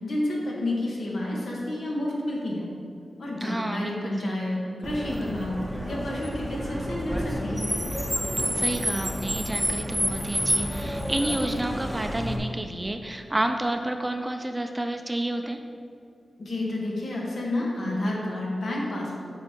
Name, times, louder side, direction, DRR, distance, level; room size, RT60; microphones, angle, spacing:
voice 1, 0.0-2.7 3.2-5.6 5.8-7.7 16.4-19.2, left 1 dB, 75° left, -3 dB, 1.8 m, -30 dB
voice 2, 3.4-4.3 8.6-15.6, right 1 dB, 15° right, 5 dB, 0.5 m, -30 dB
Car, 4.8-12.4, equal, 5° left, 0.9 m, -29 dB
8.6 x 5.6 x 4.5 m, 2.4 s
wide cardioid pair, 105°, 0 cm